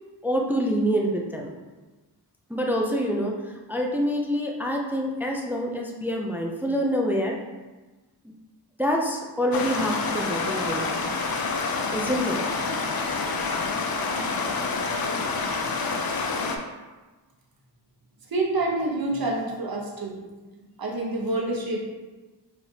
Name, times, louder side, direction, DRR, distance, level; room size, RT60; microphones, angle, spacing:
voice 1, 0.2-1.5 2.5-7.4 8.2-8.3 8.8-10.9 11.9-12.4, equal, 5° right, 0 dB, 0.4 m, -26 dB
Stream, 9.5-16.6, left 4 dB, 60° left, 0.5 m, -27 dB
voice 2, 18.3-20.2 20.8-21.8, right 2 dB, 55° right, -1 dB, 0.9 m, -27 dB
4.6 x 3.3 x 2.8 m, 1.2 s
wide cardioid pair, 115°, 42 cm